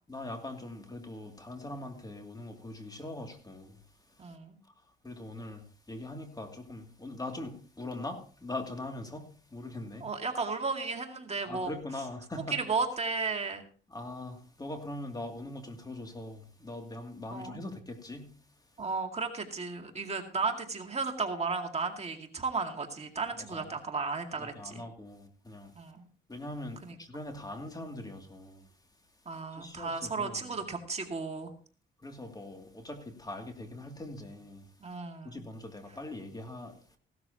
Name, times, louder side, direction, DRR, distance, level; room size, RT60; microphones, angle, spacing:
voice 1, 0.1-3.8 5.0-10.1 11.5-12.6 13.9-18.4 23.5-23.6 24.4-25.7 26.3-28.6 29.6-30.5 32.0-34.7 35.2-36.8, left 2 dB, 20° left, 2.6 m, -42 dB
voice 2, 4.2-4.6 10.0-11.7 12.5-13.6 17.3-17.6 18.8-24.9 25.8-26.1 26.8-27.0 29.3-31.5 34.8-35.4, right 4 dB, 30° right, 2.1 m, -34 dB
16.5 x 12.5 x 2.9 m
cardioid pair, 90°, 20 cm